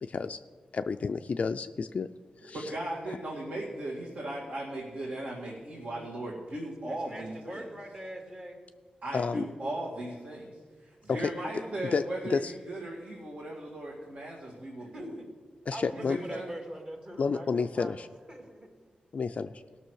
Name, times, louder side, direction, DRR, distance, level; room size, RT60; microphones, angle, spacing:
voice 1, 0.0-0.4 0.7-2.1 2.4-2.7 9.1-9.5 11.9-12.5 15.7-16.2 17.2-18.1 19.1-19.5, left 5 dB, 50° left, 8 dB, 0.3 m, -30 dB
voice 2, 2.5-7.6 9.0-10.5 10.8-15.2 15.9-16.5, right 1 dB, 60° right, -5 dB, 2.2 m, -37 dB
voice 3, 6.9-8.6 11.1-11.9 14.8-15.3 15.7-18.7, right 1 dB, 35° right, 2 dB, 2.1 m, -43 dB
17.0 x 6.2 x 6.3 m, 1.5 s
wide cardioid pair, 110°, 3 cm